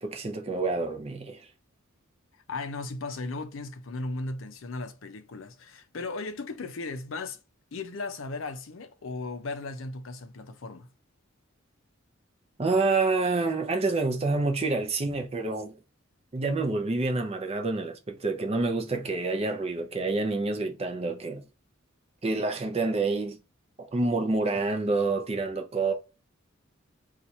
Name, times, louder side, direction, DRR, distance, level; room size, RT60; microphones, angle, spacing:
voice 1, 0.0-1.4 12.6-15.7 16.3-21.4 22.2-23.4 23.9-25.9, right 3 dB, 30° right, 0.6 m, -28 dB
voice 2, 2.5-7.4 7.7-10.9, left 3 dB, 70° left, 0.5 m, -36 dB
2.7 x 2.4 x 4.2 m
head